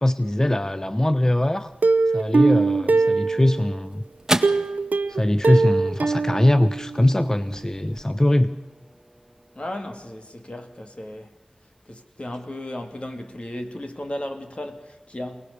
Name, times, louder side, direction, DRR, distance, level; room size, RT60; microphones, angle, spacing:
voice 1, 0.0-1.7 2.1-4.0 5.1-8.5, left 1 dB, 20° left, 0.9 m, -21 dB
Plucked string instrument, 1.8-3.8 4.4-7.2 7.5-7.6 8.0-8.1, right 3 dB, 85° right, 0.7 m, -22 dB
sound 1, 3.0-11.6, right 1 dB, 15° right, 1.8 m, -35 dB
voice 2, 9.5-11.4 11.9-15.5, left 1 dB, 45° left, 2.5 m, -35 dB
28.5 x 18.5 x 6.8 m
wide cardioid pair, 45°, 3 cm